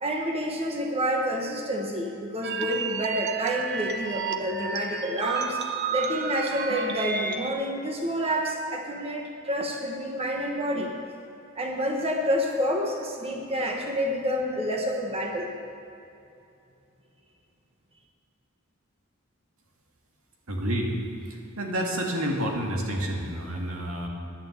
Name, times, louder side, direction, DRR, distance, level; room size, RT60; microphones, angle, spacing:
voice 1, 0.0-5.6 5.9-10.9 11.6-15.5, equal, 30° right, 1 dB, 1.2 m, -28 dB
sound 1, 2.4-7.5, right 5 dB, 55° right, 1.0 m, -31 dB
voice 2, 20.5-20.9 21.6-24.1, equal, 85° right, 0 dB, 2.2 m, -29 dB
11.0 x 10.0 x 8.1 m, 2.7 s
head